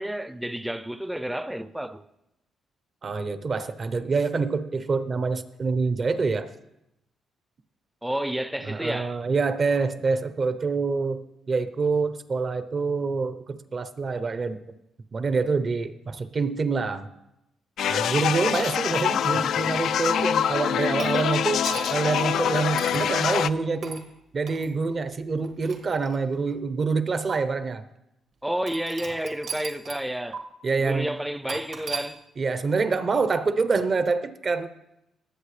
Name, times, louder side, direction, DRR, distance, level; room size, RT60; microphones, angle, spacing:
voice 1, 0.0-2.0 8.0-9.2 28.4-30.4 30.8-32.2, right 1 dB, 5° right, 0.6 m, -30 dB
voice 2, 3.0-6.5 8.6-11.2 11.5-14.6 15.1-17.1 17.9-21.6 21.9-24.0 24.3-27.8 30.6-31.1 32.4-34.7, right 4 dB, 40° right, 0.8 m, -26 dB
sound 1, 17.8-23.5, left 9 dB, 70° left, 0.3 m, -25 dB
sound 2, 21.0-22.1 22.8-23.1 23.8-24.1 24.5-24.7 25.4-26.5 27.3-27.4 28.7-30.1 30.3-30.4 31.5-32.1, right 5 dB, 65° right, 1.7 m, -37 dB
19.5 x 7.7 x 3.3 m
cardioid pair, 90°, 0 cm